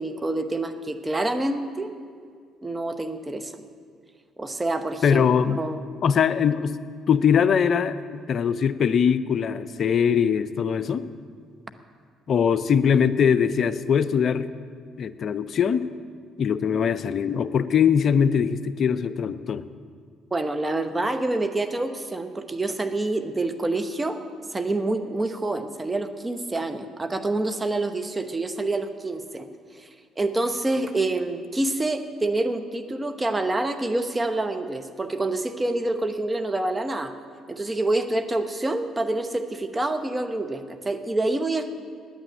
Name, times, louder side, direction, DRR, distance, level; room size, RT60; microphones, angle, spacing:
voice 1, 0.0-1.9 2.6-3.7 4.4-5.8 20.3-24.2 24.5-29.5 29.8-29.9 30.2-37.1 37.5-41.7, right 2 dB, 20° right, 7 dB, 1.0 m, -27 dB
voice 2, 5.0-5.6 6.0-6.8 7.1-11.1 12.3-14.5 15.0-15.9 16.4-19.7, left 7 dB, 50° left, 14 dB, 0.5 m, -22 dB
9.6 x 9.0 x 8.9 m, 2.1 s
hypercardioid pair, 50°, 0 cm